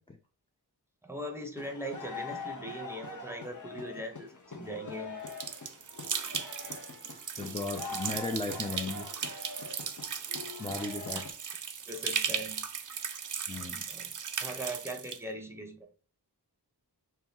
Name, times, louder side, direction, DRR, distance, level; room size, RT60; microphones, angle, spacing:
voice 1, 1.0-5.2 11.1-11.2 11.9-12.6 13.9-14.1 14.4-15.9, right 1 dB, 5° right, 0.8 m, -40 dB
sound 1, 1.5-11.3, left 3 dB, 45° left, 0.9 m, -43 dB
sound 2, 5.3-15.2, right 7 dB, 50° right, 0.4 m, -37 dB
voice 2, 7.4-9.1 10.6-11.3 13.5-13.8, left 3 dB, 15° left, 0.4 m, -36 dB
2.8 x 2.3 x 3.6 m
wide cardioid pair, 50°, 41 cm